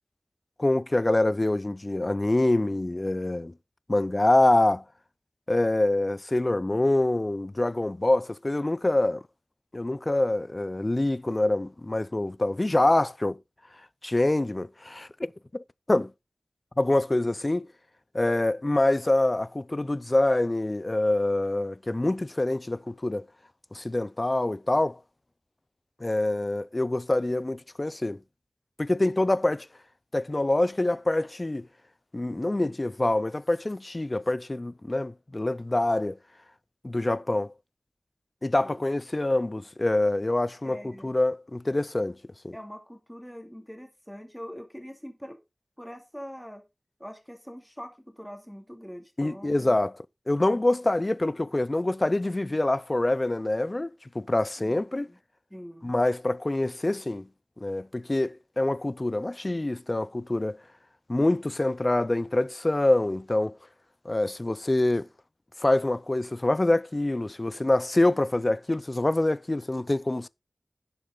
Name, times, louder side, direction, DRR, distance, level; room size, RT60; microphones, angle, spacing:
voice 1, 0.6-3.5 3.9-4.8 5.5-9.2 9.7-13.4 14.0-15.1 15.5-16.1 16.8-17.7 18.1-23.3 23.7-25.0 26.0-28.2 28.8-29.7 30.1-31.7 32.1-36.2 36.8-37.5 38.4-42.2 42.4-42.6 49.2-49.9 50.3-55.1 55.8-57.3 57.6-60.6 61.1-63.6 64.1-65.1 65.6-70.3, left 2 dB, 35° left, 0.5 m, -25 dB
voice 2, 40.6-41.1 42.5-45.4 45.8-46.6 47.0-49.8 55.1-55.2 55.5-55.9, equal, 5° left, 2.6 m, -43 dB
11.0 x 6.9 x 3.8 m
wide cardioid pair, 65°, 0 cm